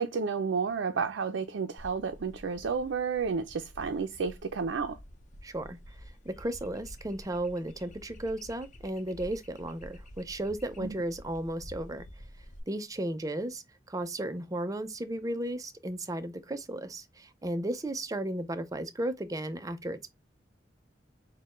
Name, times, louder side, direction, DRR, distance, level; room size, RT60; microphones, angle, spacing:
voice 1, 0.0-5.0 10.8-10.9, right 5 dB, 90° right, 0.5 m, -31 dB
sound 1, 1.8-12.6, equal, 45° left, 0.8 m, -50 dB
voice 2, 5.4-12.1 12.7-20.1, right 1 dB, 20° right, 0.5 m, -35 dB
6.5 x 2.2 x 3.0 m
head